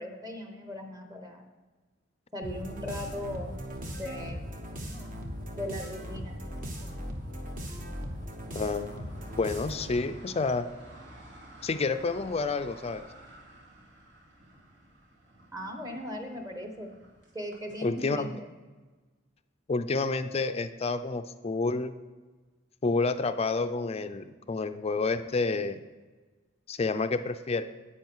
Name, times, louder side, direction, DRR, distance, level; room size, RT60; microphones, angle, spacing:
voice 1, 0.0-1.5 2.3-3.5 3.9-4.4 5.5-6.4 15.5-16.9 17.3-18.5, left 1 dB, 20° right, 4 dB, 1.1 m, -38 dB
sound 1, 2.4-10.1, equal, 45° right, 1.3 m, -38 dB
sound 2, 6.6-18.0, right 1 dB, 65° right, 2.5 m, -52 dB
voice 2, 8.5-9.1 9.4-10.7 11.6-13.0 17.8-18.4 19.7-21.9 22.8-25.8 26.7-27.6, left 3 dB, 30° left, 10 dB, 0.5 m, -29 dB
10.5 x 8.6 x 4.6 m, 1.3 s
head